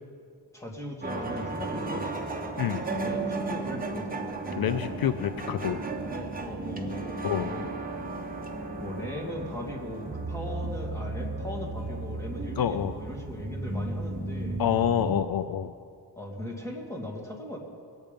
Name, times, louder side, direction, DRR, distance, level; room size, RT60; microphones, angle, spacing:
voice 1, 0.5-2.2 3.0-4.2 6.1-7.7 8.8-14.6 16.2-17.6, left 1 dB, 5° left, 0 dB, 2.2 m, -39 dB
sound 1, 1.0-15.2, right 2 dB, 20° right, 1.2 m, -34 dB
voice 2, 4.6-5.8 7.2-7.5 12.6-12.9 14.6-15.7, left 10 dB, 65° left, 11 dB, 0.5 m, -27 dB
20.5 x 8.9 x 5.2 m, 2.3 s
wide cardioid pair, 120°, 39 cm